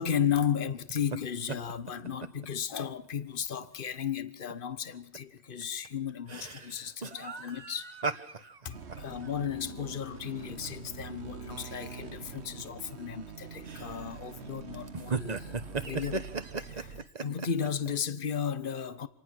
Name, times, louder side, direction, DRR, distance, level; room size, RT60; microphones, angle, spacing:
voice 1, 0.0-7.9 8.3-15.6 15.8-16.3 16.6-19.1, left 8 dB, 50° left, 1.3 m, -34 dB
sound 1, 0.9-1.2 1.5-2.5 2.8-2.9 3.4-3.7 4.5-4.6 4.9-5.2 5.6-10.7 11.1-11.2 11.9-12.1 12.8-13.2 13.6-14.2 14.7-17.9, right 4 dB, 40° right, 1.2 m, -37 dB
sound 2, 8.7-17.1, right 5 dB, 70° right, 1.6 m, -44 dB
27.0 x 19.0 x 6.4 m
omnidirectional pair, 1.2 m